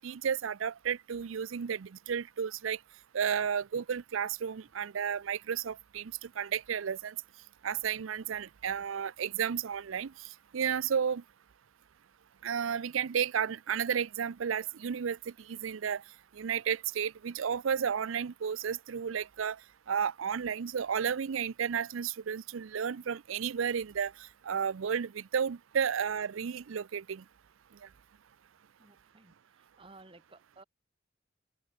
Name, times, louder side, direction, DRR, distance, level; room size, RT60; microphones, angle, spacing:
voice 1, 0.0-2.8 3.1-7.1 7.6-10.1 10.5-11.2 12.4-16.0 16.4-19.6 19.9-24.1 24.5-27.2, right 7 dB, 80° right, 0.5 m, -32 dB
voice 2, 28.8-29.3 29.8-30.6, right 2 dB, 25° right, 3.1 m, -55 dB
open air
head